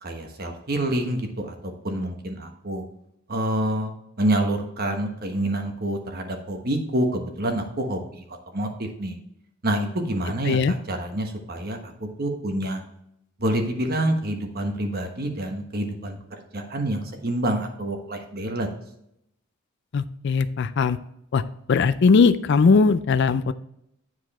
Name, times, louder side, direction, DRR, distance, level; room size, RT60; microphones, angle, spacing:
voice 1, 0.0-2.8 3.3-3.9 4.2-8.2 8.5-9.2 9.6-12.8 13.4-16.2 16.5-18.7, right 1 dB, 45° right, 4 dB, 1.2 m, -27 dB
voice 2, 19.9-21.0 21.3-21.4 21.7-23.5, left 4 dB, 55° left, 13 dB, 0.4 m, -19 dB
9.9 x 4.7 x 4.3 m, 0.77 s
head